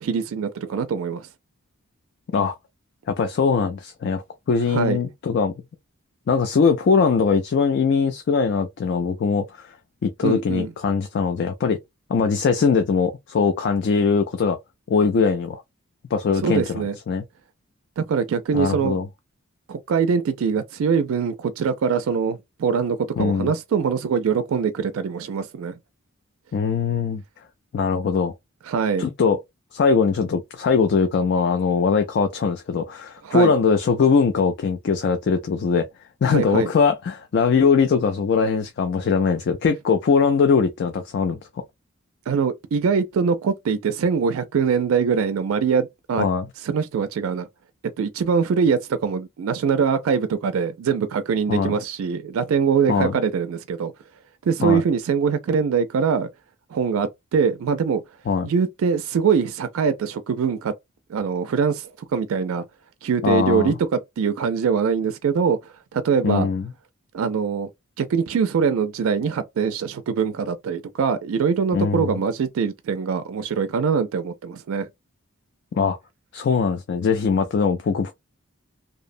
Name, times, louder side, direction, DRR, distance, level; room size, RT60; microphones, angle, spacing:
voice 1, 0.0-1.3 4.7-5.0 10.2-10.7 16.4-16.9 18.0-19.0 19.7-25.8 28.7-29.0 33.2-33.5 36.3-36.7 42.3-46.2 46.6-47.5 48.0-53.9 54.4-56.3 56.7-58.0 58.4-60.7 61.1-62.6 63.0-63.9 64.2-65.6 65.9-66.5 67.1-67.7 68.0-74.9, right 6 dB, 75° right, 0.3 m, -23 dB
voice 2, 3.1-5.5 6.3-9.8 10.0-11.8 12.1-14.6 14.9-15.6 16.1-17.2 18.5-19.1 23.2-23.5 26.5-27.2 27.7-28.3 29.0-29.4 29.7-35.9 36.2-41.4 46.2-46.5 51.5-51.8 52.9-53.2 54.6-54.8 58.3-58.5 63.2-63.8 66.2-66.7 71.7-72.2 75.7-76.0 76.3-78.1, left 5 dB, 50° left, 0.3 m, -21 dB
2.7 x 2.0 x 2.5 m
head